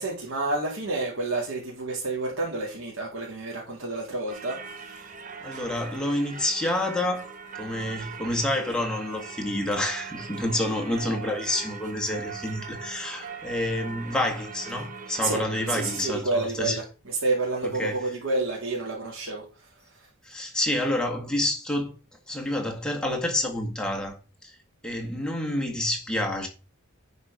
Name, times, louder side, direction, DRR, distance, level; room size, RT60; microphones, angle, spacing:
voice 1, 0.0-5.1 15.2-15.4 15.7-19.4, right 3 dB, 65° right, 2.3 m, -29 dB
Singing / Church bell, 4.3-16.2, right 5 dB, 35° right, 1.0 m, -40 dB
voice 2, 5.4-16.8 17.6-18.1 20.2-21.9 22.3-24.2 24.4-24.6 24.8-26.5, left 1 dB, 5° left, 1.8 m, -28 dB
10.0 x 4.4 x 5.1 m
head